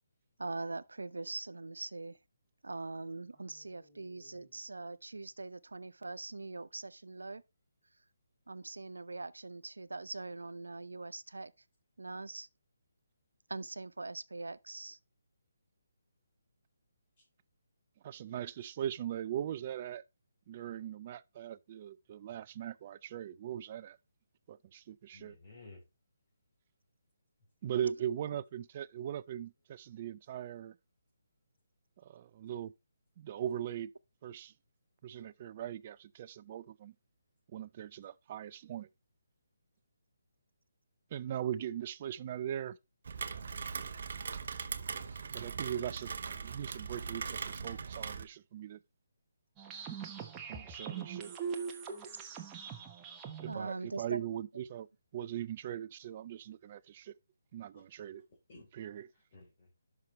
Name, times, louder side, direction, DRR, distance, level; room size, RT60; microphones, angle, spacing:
voice 1, 0.4-2.2 2.6-7.4 8.5-11.5 12.0-12.5 13.5-15.0 53.5-54.2, right 3 dB, 90° right, 0.6 m, -42 dB
voice 2, 3.3-4.6 25.1-25.8 57.7-57.8 58.5-58.7 59.1-59.7, left 2 dB, 40° left, 3.4 m, -57 dB
voice 3, 18.0-20.0 20.5-24.0 24.5-25.4 27.6-30.7 32.0-32.7 33.2-33.9 34.2-34.5 35.0-36.9 37.5-38.9 41.1-42.8 45.3-48.8 50.5-51.3 53.4-54.9 55.1-57.2 57.5-58.2 58.7-59.1, right 10 dB, 35° right, 0.4 m, -40 dB
Rain, 43.0-48.2, right 5 dB, 55° right, 0.8 m, -40 dB
sound 1, 49.6-53.5, right 6 dB, 15° right, 1.1 m, -42 dB
10.5 x 6.0 x 3.1 m
figure-of-eight pair, 155°, 0 cm